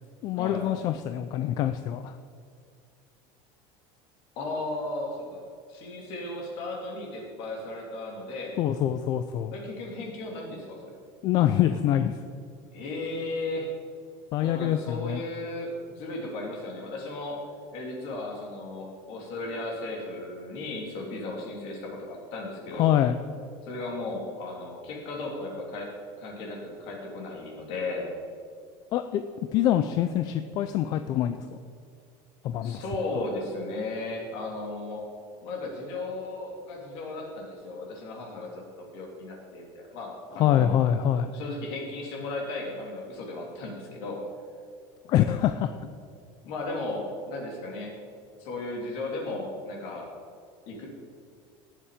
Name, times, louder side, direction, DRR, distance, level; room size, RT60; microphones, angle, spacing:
voice 1, 0.2-2.1 8.6-9.5 11.2-12.2 14.3-15.2 22.8-23.2 28.9-29.2 29.5-31.5 32.4-32.8 33.2-33.3 40.4-41.3 45.1-45.7, left 11 dB, 35° left, 9 dB, 0.4 m, -25 dB
voice 2, 4.3-5.4 5.7-8.6 9.5-10.9 12.7-13.7 14.4-17.4 17.7-23.0 23.6-25.9 26.2-28.1 32.6-35.0 35.4-38.5 38.8-40.7 41.3-44.2 46.4-47.9 48.4-50.1 50.7-50.9, left 2 dB, 50° left, -1 dB, 3.1 m, -35 dB
18.0 x 7.4 x 5.0 m, 2.3 s
cardioid pair, 180°, 12 cm